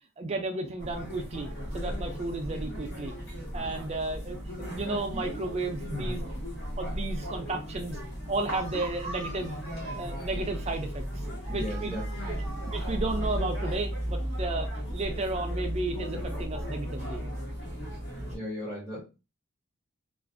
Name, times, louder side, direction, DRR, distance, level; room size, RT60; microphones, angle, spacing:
voice 1, 0.2-1.5 1.7-3.1 3.5-6.2 6.8-8.0 8.3-9.6 10.0-11.0 11.5-12.0 12.7-17.2, right 2 dB, 30° right, 4 dB, 0.4 m, -33 dB
sound 1, 0.8-18.4, equal, 55° left, 1.1 m, -35 dB
voice 2, 5.9-6.3 11.5-12.0 18.3-19.0, left 1 dB, 10° left, -5 dB, 0.7 m, -36 dB
2.4 x 2.4 x 2.5 m, 0.29 s
head